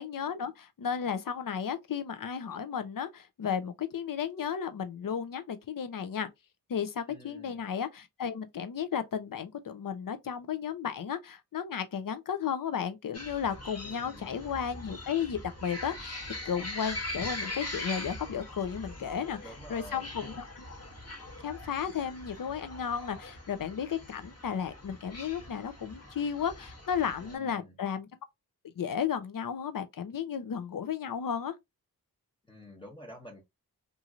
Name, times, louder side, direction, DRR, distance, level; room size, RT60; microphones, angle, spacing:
voice 1, 0.0-6.3 6.7-16.2 16.4-19.4 19.7-20.6 21.4-28.1 28.8-31.5, left 7 dB, 60° left, 0.7 m, -34 dB
voice 2, 7.1-7.6 13.8-14.3 19.4-20.4 27.2-27.8 32.5-33.4, equal, 15° left, 0.9 m, -49 dB
sound 1, 13.1-27.4, left 1 dB, 40° left, 1.2 m, -42 dB
2.9 x 2.7 x 2.3 m
cardioid pair, 50°, 38 cm